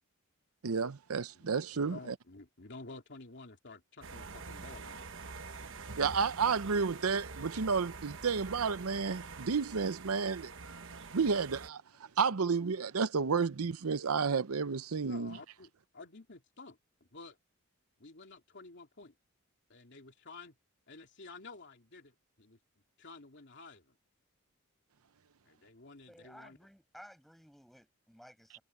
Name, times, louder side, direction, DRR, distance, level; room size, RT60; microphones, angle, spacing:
voice 1, 0.6-2.1 6.0-15.4, right 5 dB, 85° right, 0.7 m, -32 dB
voice 2, 1.3-5.1 15.0-16.8 17.1-17.4 18.0-19.1 19.7-20.5 20.9-22.6 23.0-23.8 25.4-26.6, left 3 dB, 55° left, 3.1 m, -51 dB
sound 1, 4.0-11.7, right 4 dB, 60° right, 1.1 m, -46 dB
voice 3, 26.1-28.6, equal, ahead, 6.9 m, -56 dB
head